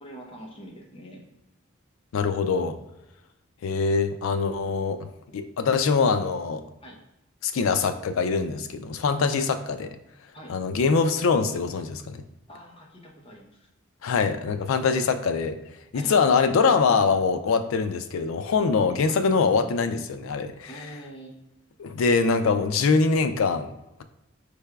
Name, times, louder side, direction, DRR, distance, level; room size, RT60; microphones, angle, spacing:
voice 1, 0.0-1.2 6.8-7.0 9.3-9.5 10.3-10.6 12.5-13.7 15.9-16.1 19.1-19.2 20.7-21.3, right 1 dB, 25° left, -1 dB, 0.7 m, -44 dB
voice 2, 2.1-2.8 3.6-5.0 5.3-6.6 7.4-9.9 10.5-12.2 14.0-15.6 15.9-20.7 21.8-23.7, left 5 dB, 85° left, 9 dB, 0.4 m, -23 dB
4.7 x 3.3 x 2.3 m, 0.95 s
head